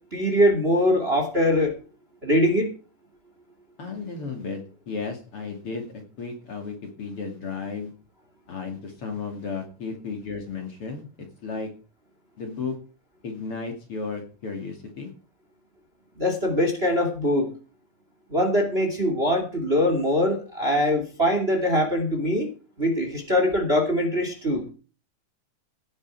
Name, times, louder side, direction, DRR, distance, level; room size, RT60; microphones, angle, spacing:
voice 1, 0.1-1.7 2.2-2.7 16.2-17.5 18.3-22.5 22.8-24.7, equal, 20° right, 4 dB, 2.6 m, -22 dB
voice 2, 3.8-4.6 4.9-5.9 6.2-7.9 8.5-11.0 11.4-11.7 12.4-12.8 13.2-15.1, left 4 dB, 45° left, 3 dB, 3.2 m, -33 dB
17.0 x 9.9 x 4.8 m, 0.36 s
omnidirectional pair, 3.8 m